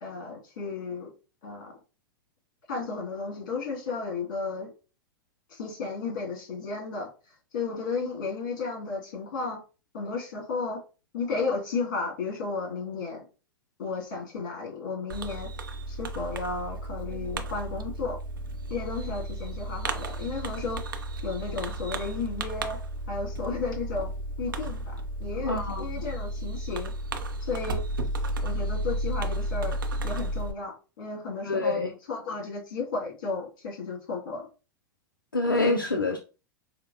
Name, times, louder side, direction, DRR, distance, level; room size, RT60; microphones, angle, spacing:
voice 1, 0.0-1.1 1.4-1.7 2.7-4.7 5.5-7.1 7.5-9.6 9.9-10.8 11.1-13.3 13.8-15.5 15.9-18.2 18.7-20.8 21.2-22.8 23.1-24.1 24.4-26.9 27.4-27.8 28.4-29.8 30.0-34.4, left 4 dB, 60° left, 1.8 m, -33 dB
Fireworks, 15.1-30.5, right 1 dB, 75° right, 0.5 m, -33 dB
voice 2, 25.4-25.9 31.5-31.9 35.3-36.2, left 2 dB, 90° left, 0.4 m, -26 dB
4.3 x 2.0 x 2.6 m
figure-of-eight pair, 90°, 11 cm